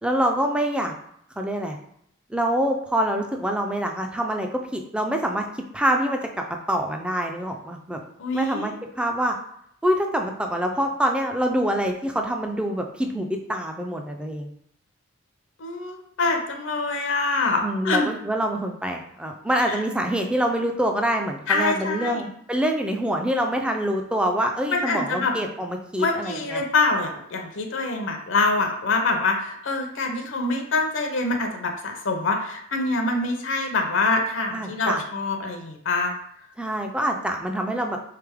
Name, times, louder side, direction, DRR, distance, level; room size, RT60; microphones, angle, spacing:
voice 1, 0.0-0.9 1.4-1.8 2.3-6.2 6.7-8.0 8.3-9.4 9.8-14.5 17.6-26.6 34.5-35.0 36.6-38.0, equal, 5° right, 3 dB, 0.3 m, -25 dB
voice 2, 8.2-8.7 15.6-18.1 19.7-19.8 21.5-22.2 24.7-25.3 26.0-36.1, left 3 dB, 70° left, 3 dB, 0.6 m, -25 dB
3.7 x 3.3 x 3.5 m, 0.72 s
head